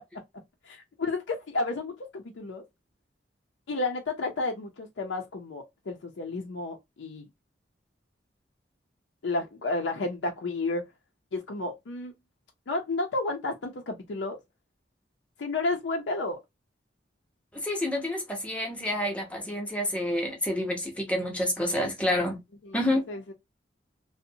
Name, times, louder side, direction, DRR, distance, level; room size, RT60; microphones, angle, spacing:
voice 1, 0.6-2.6 3.7-7.3 9.2-10.8 11.3-12.1 12.7-14.4 15.4-16.4 22.6-22.8 23.1-23.3, left 2 dB, 85° left, 0.5 m, -31 dB
voice 2, 17.5-22.4 22.7-23.0, left 1 dB, 5° left, 0.7 m, -28 dB
2.6 x 2.1 x 2.6 m
head